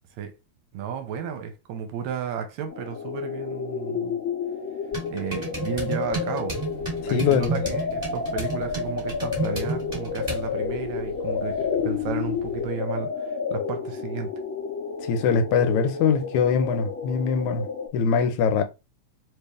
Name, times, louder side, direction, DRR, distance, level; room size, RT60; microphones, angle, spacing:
voice 1, 0.7-4.2 5.1-6.6 7.1-14.3, right 7 dB, 75° right, 2.0 m, -33 dB
sound 1, 2.7-17.9, left 6 dB, 50° left, 2.5 m, -30 dB
sound 2, 4.9-10.5, right 3 dB, 15° right, 1.5 m, -33 dB
sound 3, 6.5-12.7, right 1 dB, 50° right, 1.8 m, -44 dB
voice 2, 7.1-7.6 15.1-17.7 17.9-18.6, left 6 dB, 80° left, 2.1 m, -22 dB
4.6 x 3.4 x 3.4 m
omnidirectional pair, 3.3 m